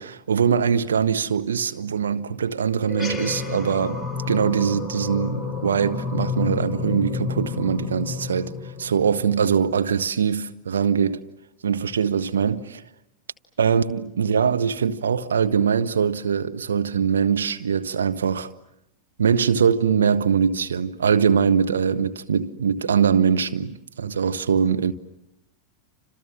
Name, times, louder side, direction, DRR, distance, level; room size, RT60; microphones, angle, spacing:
voice 1, 0.0-4.0 4.3-8.5 8.8-11.2 11.6-12.8 13.6-18.5 19.2-24.9, right 7 dB, 70° right, 1.1 m, -22 dB
sound 1, 2.8-9.6, left 5 dB, 5° right, 4.9 m, -30 dB
29.5 x 26.5 x 7.5 m
figure-of-eight pair, 90°, 0 cm